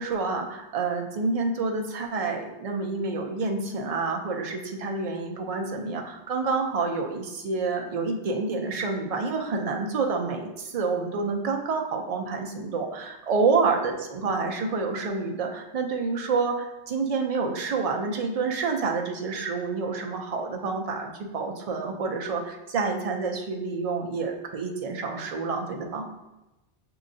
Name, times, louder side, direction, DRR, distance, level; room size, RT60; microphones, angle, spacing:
voice 1, 0.0-26.0, right 4 dB, 55° right, 2 dB, 0.4 m, -28 dB
6.2 x 2.8 x 2.6 m, 0.98 s
omnidirectional pair, 1.1 m